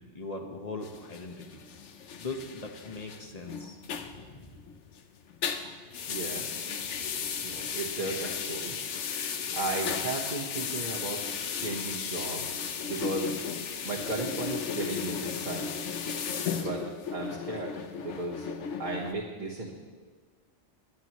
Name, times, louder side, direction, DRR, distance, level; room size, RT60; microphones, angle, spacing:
voice 1, 0.1-1.6 2.2-3.8 4.1-4.5 6.8-6.9, left 3 dB, 35° left, 3 dB, 1.2 m, -40 dB
sound 1, 0.8-5.0 5.3-19.1, left 6 dB, 75° left, 1.1 m, -35 dB
voice 2, 6.1-6.5 7.4-8.8 9.5-11.2 11.6-12.6 12.8-13.3 13.8-15.7 16.6-16.8 17.1-18.5 18.8-19.7, right 3 dB, 40° right, -4 dB, 1.4 m, -35 dB
19.5 x 10.0 x 3.1 m, 1.5 s
omnidirectional pair, 1.2 m